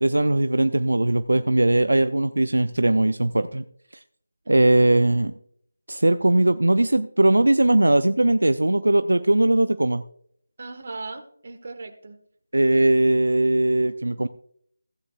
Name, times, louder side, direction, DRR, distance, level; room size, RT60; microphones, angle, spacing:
voice 1, 0.0-3.6 4.5-5.3 5.9-10.0 12.5-14.3, right 1 dB, 85° right, 11 dB, 0.5 m, -19 dB
voice 2, 10.6-12.2, right 3 dB, 50° right, 8 dB, 1.5 m, -39 dB
15.5 x 9.7 x 2.5 m, 0.66 s
figure-of-eight pair, 160°, 0 cm